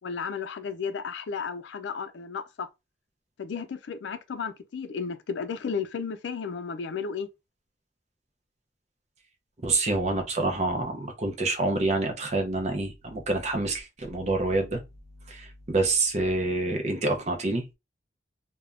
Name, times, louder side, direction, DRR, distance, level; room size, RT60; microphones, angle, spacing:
voice 1, 0.0-2.7 3.4-7.3, left 6 dB, 80° left, 0.4 m, -33 dB
voice 2, 9.6-14.8 15.3-17.7, right 2 dB, 40° right, 0.6 m, -27 dB
3.3 x 2.2 x 2.4 m
head